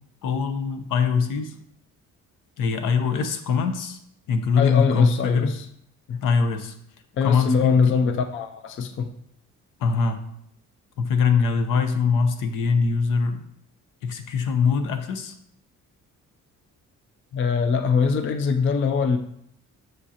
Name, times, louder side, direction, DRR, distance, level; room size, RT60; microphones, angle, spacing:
voice 1, 0.2-1.6 2.6-4.0 4.3-5.5 6.2-6.7 7.2-8.1 9.8-10.2 11.0-13.4 14.0-15.3, left 5 dB, 85° left, 8 dB, 0.8 m, -22 dB
voice 2, 4.6-5.7 6.1-6.2 7.2-9.1 17.3-19.2, left 5 dB, 40° left, 8 dB, 0.4 m, -22 dB
7.3 x 6.5 x 2.8 m, 0.72 s
cardioid pair, 180°, 31 cm